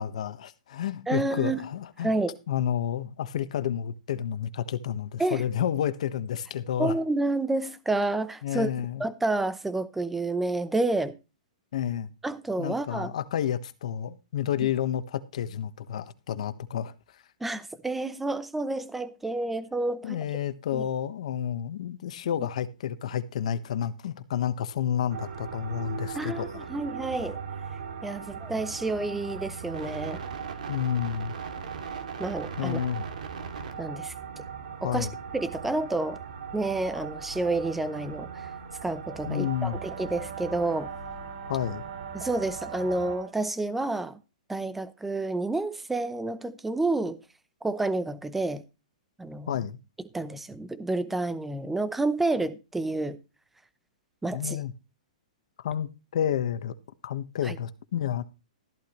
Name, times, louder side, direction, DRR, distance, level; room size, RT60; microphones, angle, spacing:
voice 1, 0.0-2.1 2.5-7.0 8.4-9.0 11.7-12.1 12.6-16.9 20.0-26.7 30.7-31.4 32.6-33.1 34.8-35.1 39.3-39.8 41.5-41.8 49.5-49.8 54.3-54.7 55.6-56.8 57.0-58.2, left 9 dB, 60° left, 1.3 m, -30 dB
voice 2, 1.1-1.6 2.0-2.4 5.2-5.4 6.8-8.7 9.0-11.1 12.2-13.1 17.4-20.2 20.7-20.8 26.1-27.4 28.0-30.2 32.2-32.8 33.8-34.1 34.8-35.1 35.3-36.2 36.5-38.5 38.8-40.9 42.1-44.2 44.5-47.2 47.6-48.6 49.2-49.6 50.1-53.2 54.2-54.6 57.4-57.6, right 2 dB, 5° right, 0.7 m, -29 dB
sound 1, 25.1-43.2, right 6 dB, 85° right, 2.7 m, -39 dB
Brass instrument, 39.1-43.4, right 6 dB, 65° right, 3.0 m, -43 dB
14.0 x 12.0 x 3.1 m
hypercardioid pair, 170°, 4 cm